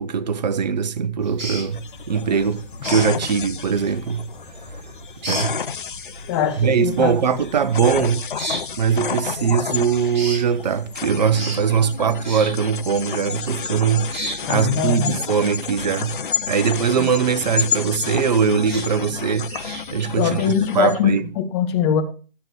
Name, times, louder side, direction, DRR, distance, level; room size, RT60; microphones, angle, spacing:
voice 1, 0.0-4.3 5.3-5.6 6.6-8.2 8.7-21.3, right 6 dB, 45° right, 1.1 m, -21 dB
sound 1, 1.2-20.6, right 1 dB, 30° right, 7.9 m, -37 dB
sound 2, 1.7-21.0, left 7 dB, 60° left, 1.0 m, -31 dB
voice 2, 6.3-7.1 14.5-15.2 17.0-17.1 20.2-22.0, left 8 dB, 25° left, 2.1 m, -22 dB
13.0 x 7.7 x 4.7 m
figure-of-eight pair, 135°, 29 cm